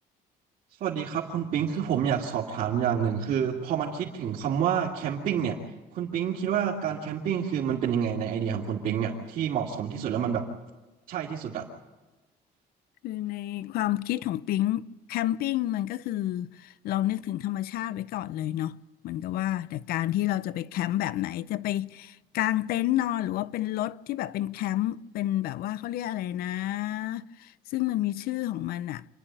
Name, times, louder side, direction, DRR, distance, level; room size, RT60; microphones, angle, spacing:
voice 1, 0.8-5.6 5.9-10.5 11.1-11.7, right 8 dB, 60° right, 2.6 m, -28 dB
voice 2, 13.0-14.8 15.1-18.8 19.0-29.1, left 14 dB, 70° left, 0.6 m, -29 dB
27.5 x 11.0 x 8.9 m
cardioid pair, 170°, 16 cm